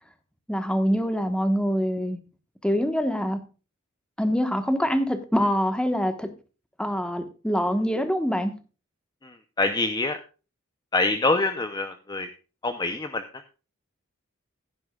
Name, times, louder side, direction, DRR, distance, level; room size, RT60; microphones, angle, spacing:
voice 1, 0.5-2.2 2.6-3.4 4.2-6.3 6.8-8.5, equal, 5° left, 1.3 m, -24 dB
voice 2, 9.2-10.2 10.9-12.3 12.6-13.2, left 2 dB, 20° left, 0.7 m, -25 dB
15.5 x 9.8 x 2.4 m
head